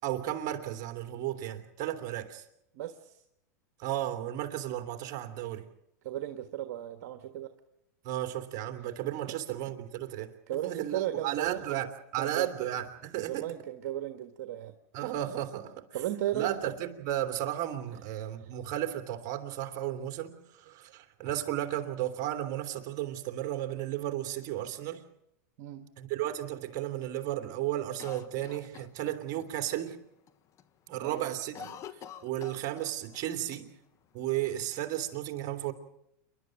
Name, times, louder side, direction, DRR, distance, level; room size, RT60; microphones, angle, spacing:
voice 1, 0.0-2.4 3.8-5.7 8.0-10.3 10.6-11.9 12.1-13.5 14.9-15.8 16.3-25.0 26.0-30.0 30.9-31.7 32.2-33.7 34.1-35.7, right 12 dB, 45° right, 2.8 m, -34 dB
voice 2, 2.7-3.2 6.0-7.5 9.3-9.4 10.5-11.6 12.2-12.5 13.3-14.7 15.9-16.6 18.4-18.5 25.6-25.9 31.0-31.8, right 12 dB, 65° right, 1.6 m, -35 dB
Cough, 28.0-29.5 29.9-30.0 30.3-30.7 31.0-33.2 33.5-33.6 34.3-35.1, left 9 dB, 35° left, 1.3 m, -47 dB
28.5 x 12.0 x 9.0 m
hypercardioid pair, 115°, 9 cm